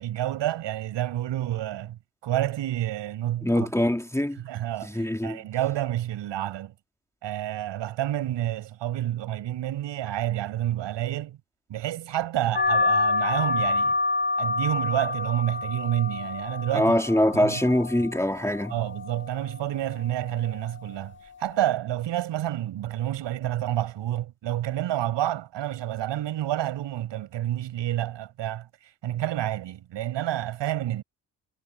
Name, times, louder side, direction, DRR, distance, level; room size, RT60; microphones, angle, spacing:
voice 1, 0.0-3.7 4.3-6.7 7.2-11.4 11.7-14.0 14.4-17.0 17.3-17.6 18.7-31.0, right 13 dB, 80° right, 7.2 m, -29 dB
voice 2, 3.4-4.4 4.8-5.4 16.7-18.7, left 1 dB, 5° left, 1.9 m, -23 dB
sound 1, 12.5-21.6, left 3 dB, 25° left, 1.7 m, -29 dB
supercardioid pair, 65°, 43 cm